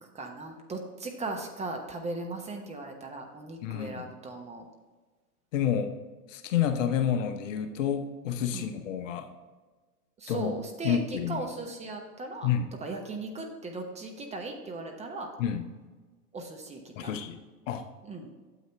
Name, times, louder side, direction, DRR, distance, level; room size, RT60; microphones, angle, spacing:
voice 1, 0.0-4.7 8.5-8.8 10.2-12.5 12.8-15.3 16.3-17.1 18.0-18.3, right 2 dB, 15° right, 2 dB, 1.1 m, -38 dB
voice 2, 3.6-4.1 5.5-5.9 6.3-9.3 10.3-10.5 10.8-11.5 12.4-12.7 15.4-15.7 17.0-17.4 17.7-17.9, left 9 dB, 55° left, 8 dB, 1.0 m, -29 dB
9.2 x 7.8 x 3.3 m, 1.3 s
hypercardioid pair, 105°, 47 cm